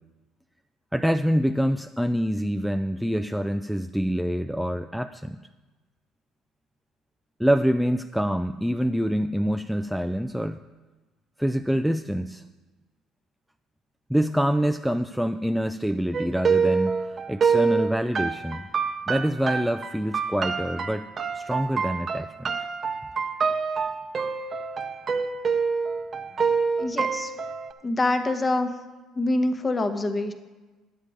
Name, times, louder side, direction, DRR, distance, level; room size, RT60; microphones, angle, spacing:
voice 1, 0.9-5.4 7.4-10.6 11.4-12.4 14.1-18.7 19.1-21.1 21.3-22.7, equal, ahead, 8 dB, 0.3 m, -26 dB
sound 1, 16.1-27.7, right 5 dB, 35° right, 0.7 m, -26 dB
voice 2, 26.8-27.3 27.8-28.7 29.1-30.3, left 2 dB, 25° left, 8 dB, 0.9 m, -25 dB
10.0 x 8.3 x 4.9 m, 1.2 s
cardioid pair, 105°, 0 cm